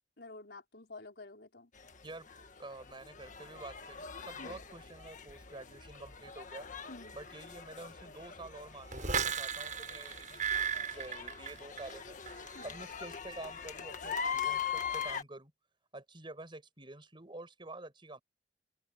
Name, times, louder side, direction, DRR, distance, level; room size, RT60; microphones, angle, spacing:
voice 1, 0.2-1.7 4.4-4.6 6.9-7.2 12.5-12.7, left 2 dB, 65° left, 4.8 m, -50 dB
sound 1, 1.8-15.2, left 7 dB, 45° left, 1.6 m, -42 dB
voice 2, 2.6-6.7 7.1-12.2 12.6-15.5 15.9-18.2, right 2 dB, 30° right, 5.1 m, -48 dB
sound 2, 8.9-12.0 12.3-12.7, right 7 dB, 45° right, 7.9 m, -35 dB
open air
head